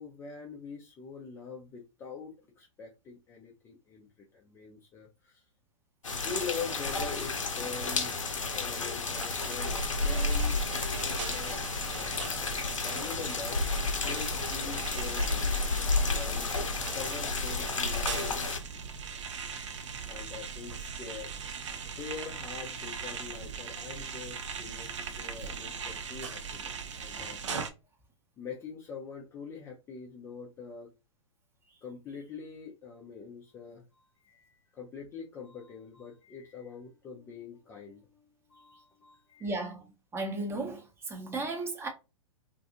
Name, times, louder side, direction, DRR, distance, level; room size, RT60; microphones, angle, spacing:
voice 1, 0.0-5.5 6.2-16.5 16.9-18.5 20.1-21.3 21.8-27.4 28.4-30.9 31.8-39.7, left 5 dB, 15° left, 0.4 m, -44 dB
sound 1, 6.0-18.6, left 3 dB, 75° left, 0.6 m, -31 dB
sound 2, 9.1-27.7, right 6 dB, 65° right, 0.5 m, -40 dB
voice 2, 39.4-41.9, right 2 dB, 15° right, 0.7 m, -35 dB
2.6 x 2.3 x 2.7 m
figure-of-eight pair, 110°, 16 cm